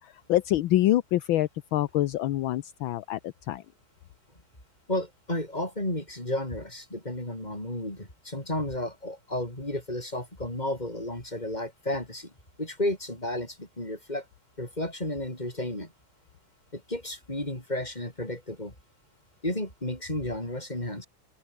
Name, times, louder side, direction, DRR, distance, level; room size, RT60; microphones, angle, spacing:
voice 1, 0.0-3.6, left 14 dB, 75° left, 1.5 m, -26 dB
voice 2, 4.9-12.3 12.6-14.2 14.6-15.9 16.7-18.7 19.4-21.1, left 1 dB, 20° left, 6.6 m, -32 dB
open air
omnidirectional pair, 2.3 m